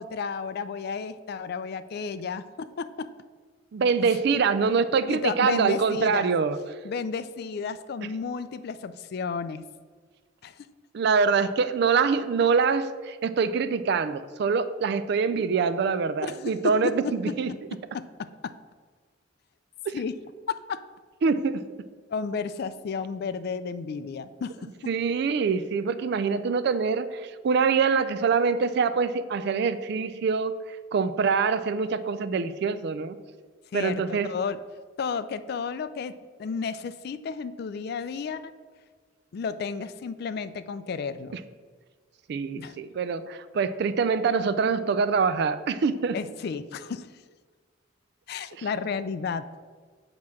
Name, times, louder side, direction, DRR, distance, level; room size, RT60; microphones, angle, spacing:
voice 1, 0.0-3.1 4.1-4.4 5.1-6.3 6.8-9.7 10.4-10.7 16.2-17.3 17.7-18.6 19.9-20.2 20.5-20.8 22.1-24.7 33.7-34.6 35.0-36.1 36.4-38.5 39.3-41.4 42.5-42.8 46.1-47.1 48.3-49.5, left 5 dB, 55° left, 13 dB, 0.3 m, -32 dB
voice 2, 3.7-6.6 10.9-17.5 19.9-20.0 21.2-21.6 24.9-30.5 30.9-33.2 33.7-34.3 42.3-46.1 48.6-48.7, right 5 dB, 60° right, 13 dB, 0.3 m, -24 dB
7.5 x 2.9 x 6.1 m, 1.5 s
head